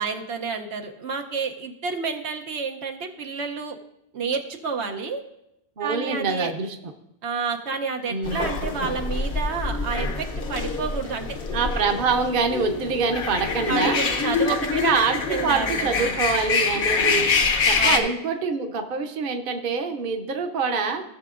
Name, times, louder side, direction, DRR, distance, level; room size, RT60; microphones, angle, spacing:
voice 1, 0.0-3.8 4.1-5.2 5.8-6.5 7.2-11.4 13.7-14.6 15.3-16.1 17.8-18.1, right 5 dB, 80° right, 4 dB, 1.1 m, -29 dB
voice 2, 5.8-6.7 8.1-8.4 11.5-14.0 14.5-17.3 17.6-21.0, right 4 dB, 55° right, 5 dB, 1.0 m, -25 dB
sound 1, 8.2-18.0, left 4 dB, 60° left, 1.0 m, -25 dB
17.0 x 6.8 x 2.5 m, 0.84 s
omnidirectional pair, 1.1 m